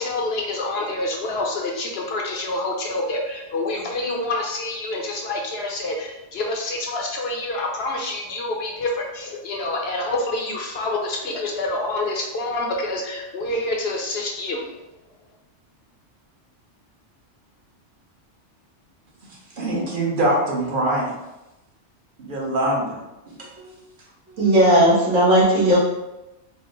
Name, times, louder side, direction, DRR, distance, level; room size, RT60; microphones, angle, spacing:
voice 1, 0.0-14.6, left 2 dB, 65° left, 0 dB, 0.8 m, -27 dB
voice 2, 19.3-21.1 22.2-23.0 23.3-23.5, right 1 dB, 50° right, -3 dB, 1.0 m, -24 dB
voice 3, 24.4-25.8, right 1 dB, 75° right, -8 dB, 1.9 m, -16 dB
4.1 x 2.1 x 3.7 m, 0.96 s
omnidirectional pair, 1.2 m